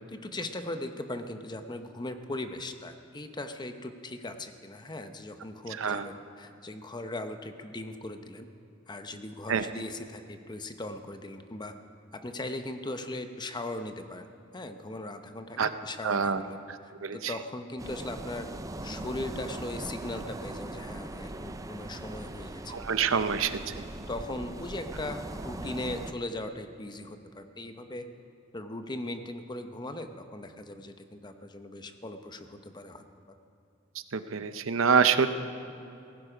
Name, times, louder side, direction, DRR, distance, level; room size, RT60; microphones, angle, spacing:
voice 1, 0.1-8.5 8.9-11.7 12.1-14.3 14.5-18.5 18.8-22.8 24.1-28.1 28.5-33.0, left 2 dB, 20° left, 8 dB, 0.8 m, -39 dB
voice 2, 16.0-16.4 17.0-17.3 22.7-23.6 34.1-35.3, right 6 dB, 75° right, 11 dB, 0.7 m, -25 dB
sound 1, 17.8-26.1, right 2 dB, 15° right, 0.5 m, -40 dB
17.5 x 15.0 x 5.0 m, 2.7 s
head